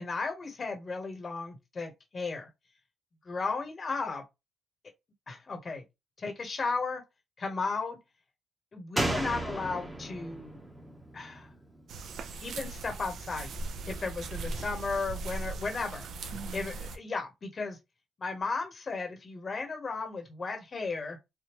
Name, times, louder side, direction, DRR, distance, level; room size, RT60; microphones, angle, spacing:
voice 1, 0.0-2.5 3.3-4.2 5.3-5.8 6.2-7.0 7.4-8.0 8.7-10.6 11.1-11.5 12.4-13.5 13.9-16.1 16.5-17.8 18.2-21.2, left 4 dB, 40° left, 1.1 m, -35 dB
Slam, 9.0-12.4 12.7-12.8, right 1 dB, 10° right, 0.9 m, -35 dB
sound 1, 11.9-17.0, right 3 dB, 65° right, 0.6 m, -39 dB
3.6 x 2.2 x 3.0 m
cardioid pair, 90°, 0 cm